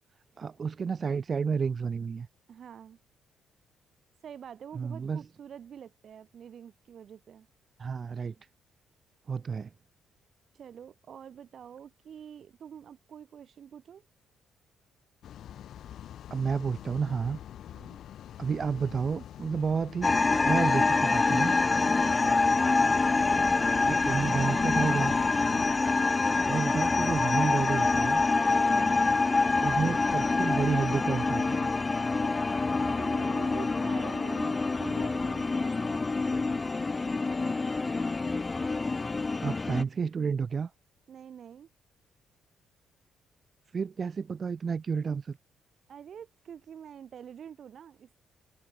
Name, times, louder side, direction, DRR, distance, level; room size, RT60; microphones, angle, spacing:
voice 1, 0.4-2.3 4.7-5.2 7.8-8.3 9.3-9.7 16.3-17.4 18.4-20.2 20.4-21.5 23.8-25.1 26.4-28.2 29.6-31.7 39.4-40.7 43.7-45.4, right 6 dB, 40° right, 1.4 m, -30 dB
voice 2, 2.5-3.0 4.2-7.5 10.5-14.0 17.7-18.0 32.8-36.5 41.1-41.7 45.9-48.2, right 8 dB, 60° right, 3.5 m, -46 dB
sound 1, 15.2-25.7, left 10 dB, 70° left, 2.1 m, -45 dB
sound 2, 20.0-39.8, left 3 dB, 25° left, 0.4 m, -26 dB
cardioid pair, 90°, 0 cm